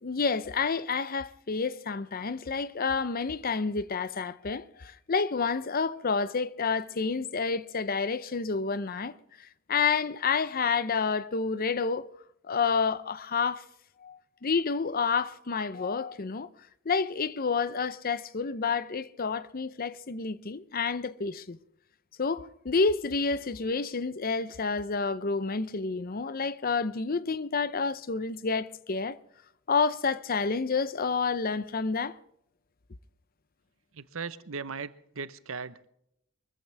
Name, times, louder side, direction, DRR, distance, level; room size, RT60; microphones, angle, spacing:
voice 1, 0.0-9.2 9.7-12.1 12.5-13.7 14.0-16.5 16.9-21.6 22.2-29.2 29.7-32.2, left 5 dB, 45° left, 0.7 m, -29 dB
voice 2, 33.9-35.9, right 5 dB, 75° right, 0.9 m, -38 dB
23.0 x 14.5 x 3.4 m
head